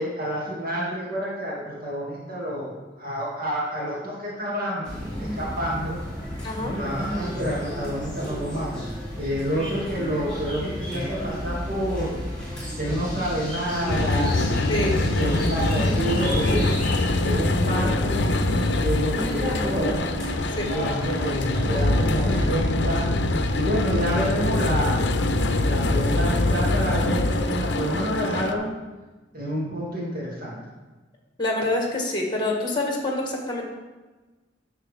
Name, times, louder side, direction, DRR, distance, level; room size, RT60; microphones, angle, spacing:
voice 1, 0.0-6.0 6.7-8.9 9.2-12.2 12.8-14.6 15.0-16.8 17.2-18.2 18.7-20.0 20.5-23.0 23.5-25.1 25.6-28.7 29.3-30.6, equal, 55° right, -6 dB, 2.5 m, -29 dB
sound 1, 4.8-22.4, equal, 5° left, 3.2 m, -31 dB
voice 2, 6.4-6.8 14.7-15.0 20.6-20.8 31.4-33.6, left 1 dB, 25° left, 0 dB, 1.6 m, -26 dB
sound 2, 13.9-28.5, left 2 dB, 70° left, 0.6 m, -24 dB
10.5 x 6.7 x 3.6 m, 1.2 s
head